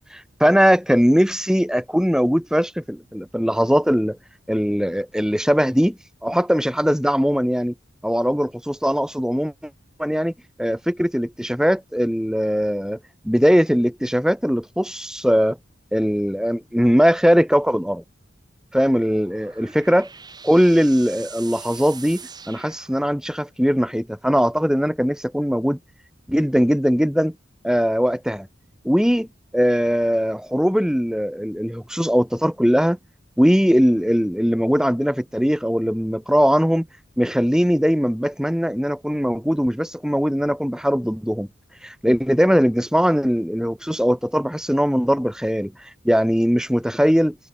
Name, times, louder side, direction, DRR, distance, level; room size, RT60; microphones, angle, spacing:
voice 1, 0.1-4.2 4.5-7.7 8.0-9.5 10.0-10.3 10.6-13.0 13.2-15.6 15.9-18.0 18.7-20.1 20.4-25.8 26.3-27.3 27.6-28.5 28.8-29.3 29.5-33.0 33.4-36.9 37.2-41.5 41.8-45.7 46.0-47.4, equal, 5° right, 3.0 m, -20 dB
sound 1, 19.0-23.5, right 6 dB, 20° right, 3.8 m, -42 dB
head